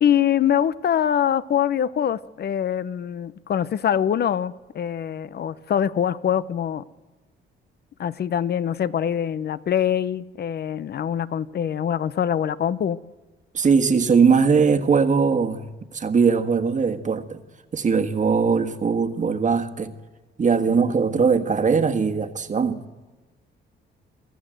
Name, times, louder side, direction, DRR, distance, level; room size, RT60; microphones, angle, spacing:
voice 1, 0.0-6.8 8.0-13.0, left 9 dB, 55° left, 0.8 m, -24 dB
voice 2, 13.5-15.7 15.9-17.4 17.7-19.9 20.4-22.8, right 5 dB, 40° right, 1.6 m, -20 dB
23.5 x 15.0 x 7.8 m
cardioid pair, 90°, 20 cm